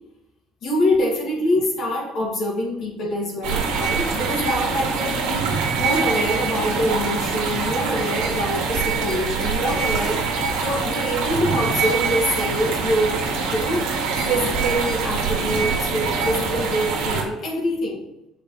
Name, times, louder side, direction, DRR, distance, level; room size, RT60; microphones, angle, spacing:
voice 1, 0.6-5.5 5.7-13.2 13.5-13.9 14.2-18.0, equal, 60° left, -2 dB, 2.4 m, -25 dB
sound 1, 3.4-17.2, right 5 dB, 85° right, 1.9 m, -24 dB
5.6 x 5.2 x 6.5 m, 0.90 s
supercardioid pair, 90°, 0 cm